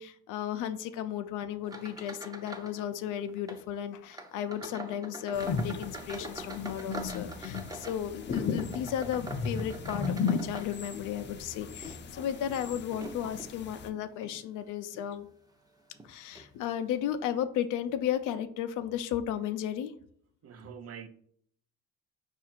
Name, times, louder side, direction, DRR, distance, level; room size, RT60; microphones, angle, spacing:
voice 1, 0.0-15.3 16.0-19.9, left 10 dB, 90° left, 0.5 m, -34 dB
sound 1, 1.6-2.8 3.1-3.6 4.1-11.2 11.7-13.5 14.1-14.4 14.9-15.1 15.9-16.1 16.4-16.5, right 2 dB, 10° right, 0.6 m, -44 dB
sound 2, 5.3-13.9, left 5 dB, 40° left, 0.5 m, -36 dB
voice 2, 20.4-21.1, right 7 dB, 55° right, 0.6 m, -44 dB
4.7 x 2.5 x 4.4 m
cardioid pair, 90°, 30 cm